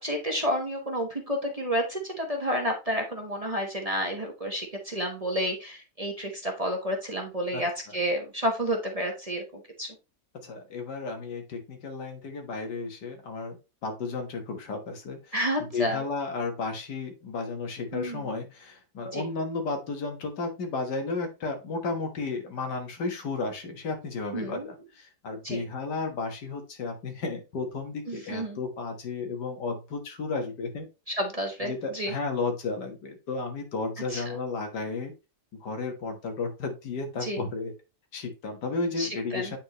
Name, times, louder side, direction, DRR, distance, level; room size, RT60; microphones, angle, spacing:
voice 1, 0.0-9.9 15.3-16.0 17.9-18.2 19.1-19.2 24.3-24.7 25.4-25.6 28.1-28.6 31.1-32.1 34.1-34.2 37.2-37.4 39.0-39.5, equal, 25° right, 1 dB, 1.0 m, -30 dB
voice 2, 10.4-13.6 13.8-30.9 31.6-35.1 35.6-37.7 38.1-39.6, left 3 dB, 85° left, 5 dB, 2.0 m, -33 dB
8.9 x 4.3 x 3.1 m, 0.28 s
omnidirectional pair, 1.8 m